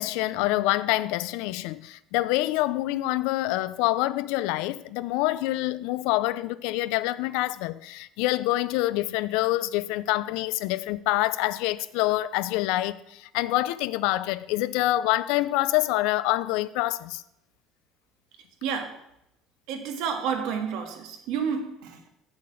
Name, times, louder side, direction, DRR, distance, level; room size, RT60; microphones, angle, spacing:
voice 1, 0.0-17.2, left 17 dB, 90° left, 0.4 m, -26 dB
voice 2, 18.6-19.0 19.7-22.1, right 6 dB, 75° right, 1.6 m, -30 dB
7.0 x 6.8 x 7.7 m
cardioid pair, 150°, 0 cm